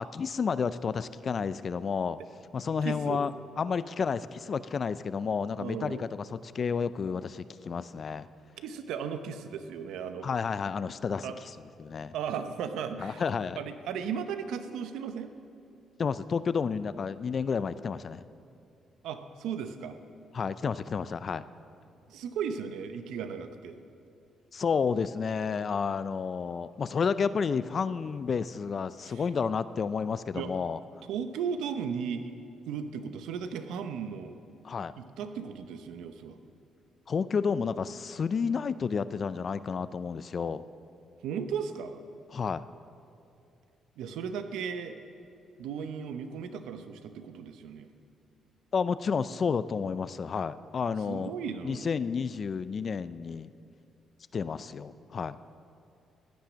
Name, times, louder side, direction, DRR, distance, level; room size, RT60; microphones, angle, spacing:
voice 1, 0.0-2.2 2.5-8.3 10.2-11.3 11.8-12.1 13.0-13.6 16.0-18.3 20.3-21.4 24.5-30.8 34.6-34.9 37.1-40.6 42.3-42.6 48.7-51.3 51.6-53.5 54.3-55.4, left 6 dB, 45° left, 14 dB, 0.5 m, -31 dB
voice 2, 2.8-3.2 5.6-6.0 8.6-10.3 11.2-11.3 12.1-13.2 13.6-15.3 19.0-20.0 22.1-23.8 29.0-29.2 30.3-30.5 31.1-32.3 32.7-34.3 35.0-36.4 41.2-42.0 44.0-45.0 45.6-47.9 51.0-51.9, right 7 dB, 85° right, 8 dB, 0.8 m, -36 dB
16.0 x 10.5 x 6.3 m, 2.6 s
cardioid pair, 90°, 0 cm